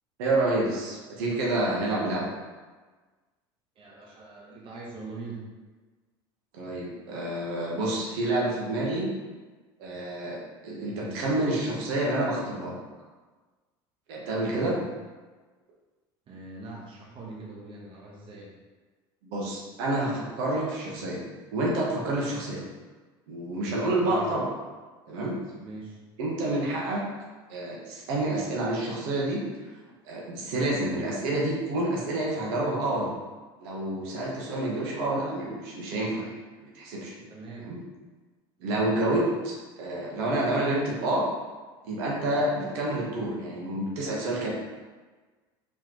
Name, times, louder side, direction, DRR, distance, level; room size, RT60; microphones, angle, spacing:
voice 1, 0.2-2.3 6.5-9.1 9.8-12.8 14.1-14.8 19.2-21.2 21.5-22.6 23.3-24.5 25.1-25.3 26.2-27.0 27.5-29.4 30.0-33.1 33.6-37.1 37.6-37.8 38.6-41.3 41.8-44.5, right 1 dB, 75° right, -4 dB, 1.2 m, -28 dB
voice 2, 3.8-5.5 14.5-14.8 16.3-18.6 24.0-24.3 25.6-26.0 37.3-37.7, right 3 dB, 45° right, -3 dB, 1.2 m, -42 dB
4.3 x 3.8 x 3.1 m, 1.3 s
supercardioid pair, 95°, 13 cm